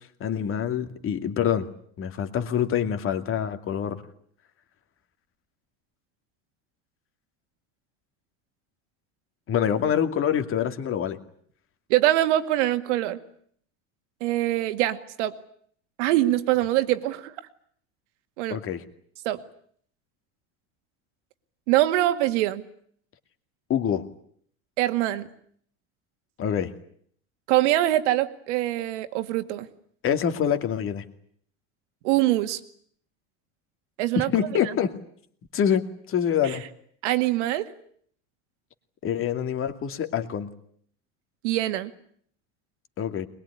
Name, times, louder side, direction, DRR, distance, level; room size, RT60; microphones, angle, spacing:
voice 1, 0.0-1.7 2.0-4.0 9.5-11.2 18.5-18.8 23.7-24.1 26.4-26.7 30.0-31.0 34.2-34.9 35.5-36.6 39.0-40.5 43.0-43.3, left 8 dB, 35° left, 8 dB, 2.5 m, -26 dB
voice 2, 11.9-13.2 14.2-15.3 16.0-17.3 18.4-18.6 19.2-19.4 21.7-22.6 24.8-25.3 27.5-29.7 32.0-32.6 34.0-34.3 34.6-34.7 36.4-36.6 37.0-37.7 41.4-41.9, right 15 dB, 85° right, 9 dB, 2.1 m, -23 dB
22.0 x 22.0 x 10.0 m, 0.62 s
supercardioid pair, 130°, 35 cm